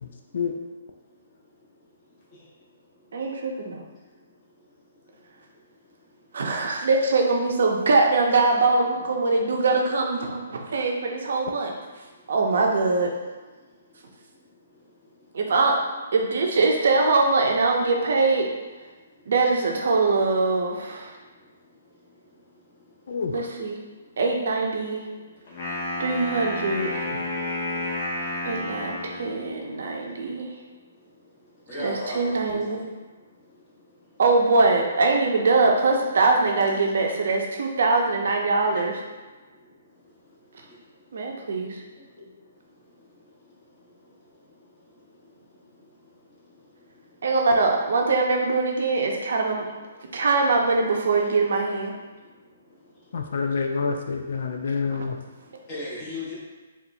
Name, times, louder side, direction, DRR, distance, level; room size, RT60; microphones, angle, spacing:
voice 1, 3.1-3.8 6.3-11.7 12.3-13.1 15.3-15.8 16.1-18.5 19.3-21.2 23.3-23.8 24.2-25.0 26.0-26.9 28.5-30.5 31.8-32.8 34.2-38.9 41.1-41.8 47.2-49.6 50.1-51.9 53.7-53.8, right 3 dB, 70° right, 1 dB, 0.6 m, -22 dB
voice 2, 23.1-23.4 53.1-55.2, left 5 dB, 65° left, 4 dB, 0.3 m, -27 dB
Wind instrument woodwind instrument, 25.5-29.4, left 1 dB, 45° left, 0.9 m, -31 dB
voice 3, 31.7-32.9 36.7-37.1 38.7-38.8 55.7-56.3, left 2 dB, 30° left, -7 dB, 1.3 m, -35 dB
4.1 x 2.5 x 2.7 m, 1.3 s
hypercardioid pair, 145°, 0 cm